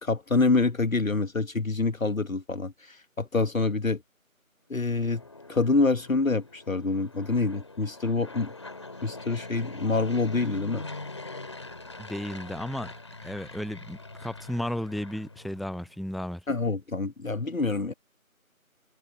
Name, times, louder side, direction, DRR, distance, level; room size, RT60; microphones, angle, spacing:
voice 1, 0.0-4.0 4.7-5.2 5.5-8.5 9.0-10.8 16.5-17.9, left 3 dB, 70° left, 1.3 m, -26 dB
Fixed-wing aircraft airplane, 4.8-15.9, left 2 dB, 20° left, 4.8 m, -43 dB
voice 2, 12.0-12.9 13.2-16.4, left 1 dB, ahead, 0.5 m, -34 dB
figure-of-eight pair, 175°, 42 cm